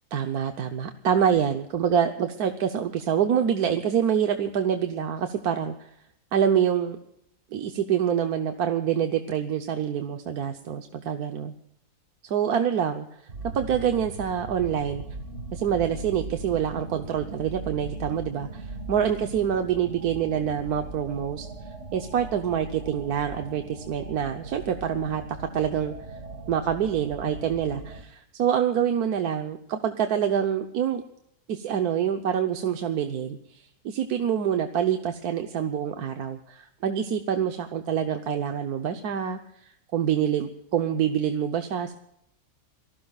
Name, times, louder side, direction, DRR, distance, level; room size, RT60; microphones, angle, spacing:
voice 1, 0.1-5.9 6.3-7.0 7.5-11.5 12.2-13.1 13.5-15.0 15.5-21.5 21.9-25.9 26.5-31.0 31.5-41.9, right 8 dB, 70° right, 6 dB, 1.4 m, -26 dB
sound 1, 13.3-28.0, right 3 dB, 45° right, 2.1 m, -39 dB
27.0 x 19.5 x 2.4 m, 0.76 s
omnidirectional pair, 1.7 m